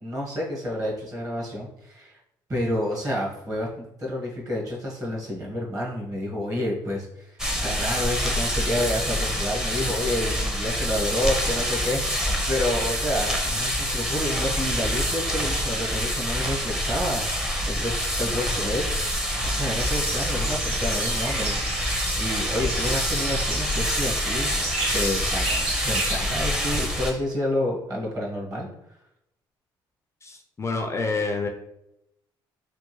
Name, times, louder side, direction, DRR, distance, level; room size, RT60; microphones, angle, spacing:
voice 1, 0.0-2.2 2.5-18.9 19.4-21.5 21.8-24.5 24.9-28.7, left 1 dB, 35° right, -2 dB, 1.4 m, -29 dB
sound 1, 7.4-27.1, equal, 5° right, 0.7 m, -26 dB
sound 2, 19.8-27.2, right 3 dB, 75° right, 0.9 m, -34 dB
voice 2, 30.2-31.5, left 3 dB, 30° left, 4 dB, 0.4 m, -28 dB
3.5 x 2.5 x 3.1 m, 0.82 s
supercardioid pair, 80°, 10 cm